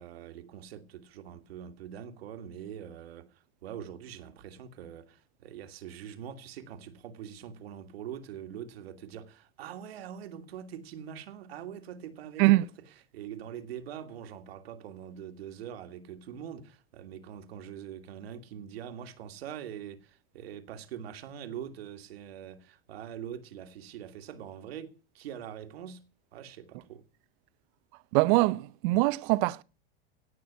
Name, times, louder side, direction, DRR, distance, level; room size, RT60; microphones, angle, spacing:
voice 1, 0.0-12.7 13.1-26.1 26.3-27.0, right 9 dB, 80° right, 2.0 m, -43 dB
voice 2, 28.1-29.6, right 20 dB, 60° right, 0.7 m, -23 dB
17.5 x 6.2 x 9.5 m
hypercardioid pair, 110°, 30 cm